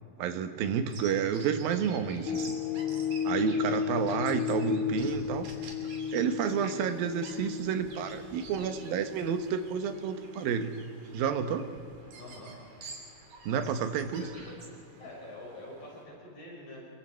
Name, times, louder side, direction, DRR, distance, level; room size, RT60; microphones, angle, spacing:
voice 1, 0.2-2.6 3.2-5.5 6.1-10.7 11.1-11.7 13.5-14.2, right 7 dB, 80° right, 8 dB, 3.0 m, -30 dB
Bird vocalization bird call bird song, 0.9-16.0, right 3 dB, 55° right, 4.3 m, -50 dB
sound 1, 2.3-10.7 11.2-11.3, left 7 dB, 85° left, 3.6 m, -34 dB
voice 2, 12.2-12.6 13.3-13.5 14.4-14.5 15.0-16.9, left 1 dB, 65° left, -3 dB, 6.9 m, -46 dB
30.0 x 24.0 x 4.5 m, 2.6 s
omnidirectional pair, 4.2 m